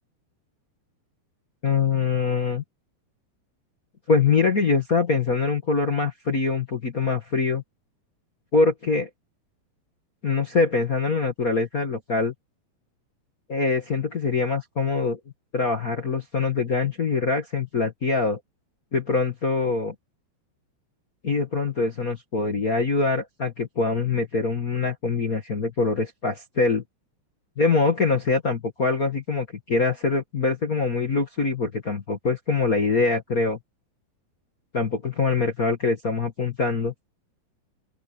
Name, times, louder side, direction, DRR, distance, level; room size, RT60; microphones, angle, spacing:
voice 1, 1.6-2.6 4.1-7.6 8.5-9.1 10.2-12.3 13.5-15.2 15.5-18.4 18.9-19.9 21.2-26.8 27.6-33.6 34.7-36.9, left 4 dB, 65° left, 0.8 m, -24 dB
open air
omnidirectional pair, 4.8 m